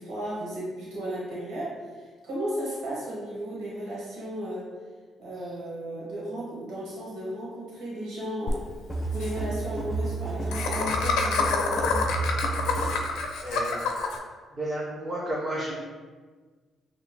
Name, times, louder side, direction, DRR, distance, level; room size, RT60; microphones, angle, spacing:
voice 1, 0.0-4.7 5.2-8.6 9.1-12.1, equal, 90° right, -7 dB, 1.5 m, -34 dB
Laughter, 8.5-8.6 8.8-8.9 9.1-9.3 10.5-14.2, left 4 dB, 90° left, 0.5 m, -27 dB
sound 1, 8.9-13.1, right 3 dB, 15° left, 1.1 m, -31 dB
voice 2, 13.4-13.8 14.5-15.7, right 1 dB, 20° right, -6 dB, 1.0 m, -31 dB
5.6 x 3.2 x 2.3 m, 1.4 s
cardioid pair, 90°, 0 cm